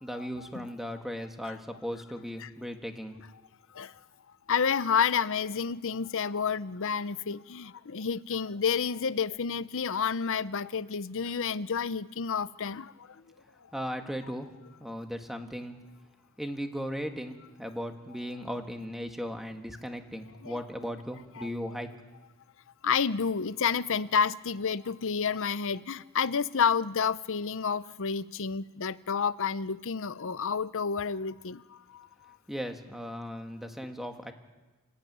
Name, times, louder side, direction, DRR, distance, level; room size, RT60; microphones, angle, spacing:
voice 1, 0.0-3.1 13.7-14.5 14.8-15.8 16.4-21.9 32.5-34.3, equal, ahead, 1.7 m, -37 dB
voice 2, 4.5-13.1 20.4-20.6 21.4-21.5 22.8-32.4, left 6 dB, 65° left, 0.7 m, -30 dB
26.0 x 14.0 x 9.4 m
head